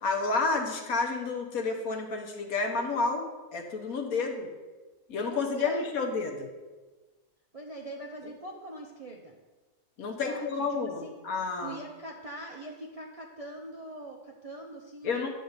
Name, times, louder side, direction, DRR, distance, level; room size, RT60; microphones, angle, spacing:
voice 1, 0.0-3.2 3.5-4.5 5.1-6.5 10.0-11.8 15.0-15.3, left 4 dB, 65° left, 3 dB, 1.4 m, -30 dB
voice 2, 5.3-5.9 7.5-9.4 10.2-11.1 11.6-15.3, right 1 dB, 40° right, -1 dB, 0.5 m, -43 dB
9.0 x 4.0 x 6.7 m, 1.2 s
omnidirectional pair, 1.6 m